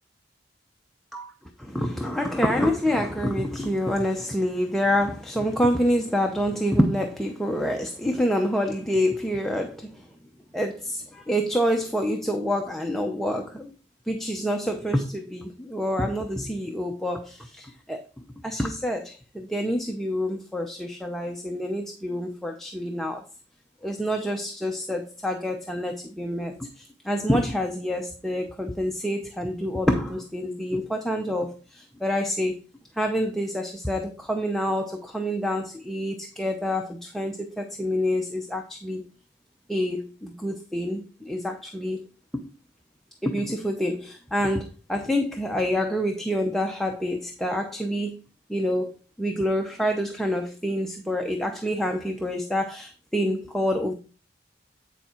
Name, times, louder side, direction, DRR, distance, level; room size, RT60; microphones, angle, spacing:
voice 1, 1.6-10.1 10.5-13.7 14.1-18.0 18.4-23.2 23.8-32.6 33.0-39.1 39.7-42.1 43.2-48.2 48.5-48.9 49.2-53.9, equal, ahead, 0.7 m, -27 dB
9.8 x 4.7 x 4.4 m
head